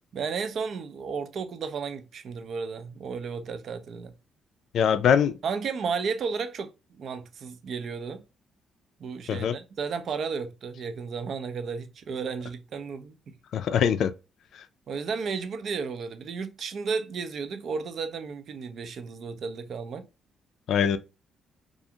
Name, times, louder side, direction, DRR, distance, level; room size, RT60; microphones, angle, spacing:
voice 1, 0.1-4.1 5.4-8.2 9.0-13.4 14.9-20.1, right 5 dB, 60° right, 0.4 m, -33 dB
voice 2, 4.7-5.3 9.3-9.6 13.5-14.1 20.7-21.0, left 8 dB, 70° left, 0.3 m, -22 dB
2.4 x 2.4 x 2.7 m
cardioid pair, 90°, 0 cm